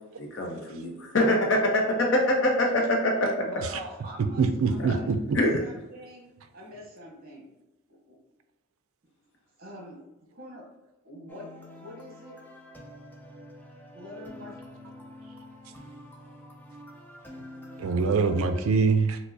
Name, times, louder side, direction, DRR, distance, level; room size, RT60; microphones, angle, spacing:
voice 1, 0.2-3.5 4.8-4.9 5.3-5.5, left 1 dB, 55° left, 0 dB, 0.6 m, -24 dB
voice 2, 3.4-7.5 7.9-8.2 9.6-10.0 10.3-10.7 11.0-11.5 11.8-12.4 13.9-14.8, equal, 45° right, 0 dB, 0.9 m, -45 dB
voice 3, 4.4-5.4 17.8-19.2, right 4 dB, 70° right, 8 dB, 0.3 m, -24 dB
sound 1, 11.3-18.7, left 1 dB, 10° left, 0.3 m, -47 dB
4.5 x 2.0 x 2.6 m, 1.0 s
head